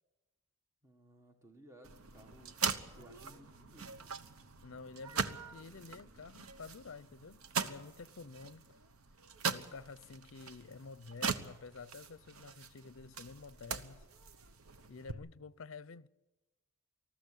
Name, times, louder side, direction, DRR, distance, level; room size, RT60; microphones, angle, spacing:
voice 1, 0.8-2.6 3.0-4.1, right 1 dB, 15° right, 1.6 m, -59 dB
sound 1, 1.8-15.1, right 5 dB, 85° right, 1.1 m, -41 dB
voice 2, 4.6-8.7 9.5-14.0 14.9-16.1, left 4 dB, 65° left, 0.6 m, -50 dB
20.0 x 14.0 x 9.9 m
head